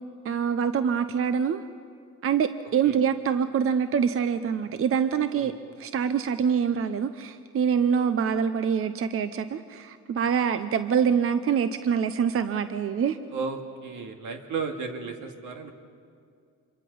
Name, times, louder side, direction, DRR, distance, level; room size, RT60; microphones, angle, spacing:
voice 1, 0.2-1.6 2.2-5.5 5.8-13.2, right 7 dB, 45° right, 11 dB, 0.7 m, -25 dB
voice 2, 13.3-15.7, right 5 dB, 80° right, 4 dB, 2.2 m, -34 dB
27.0 x 23.5 x 5.5 m, 2.3 s
cardioid pair, 90°, 30 cm